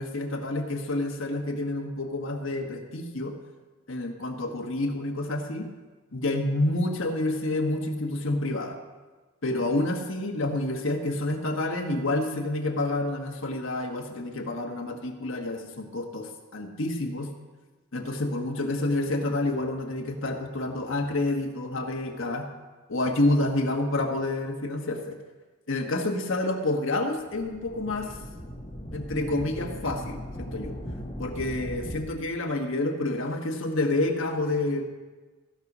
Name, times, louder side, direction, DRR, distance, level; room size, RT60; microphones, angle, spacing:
voice 1, 0.0-3.3 3.9-5.7 6.1-8.8 9.4-17.3 17.9-22.5 22.9-25.2 25.7-28.2 28.9-30.8 31.2-34.8, left 2 dB, 65° left, 3 dB, 1.3 m, -28 dB
sound 1, 27.2-32.0, equal, 30° left, 1.6 m, -38 dB
15.5 x 5.4 x 6.1 m, 1.3 s
head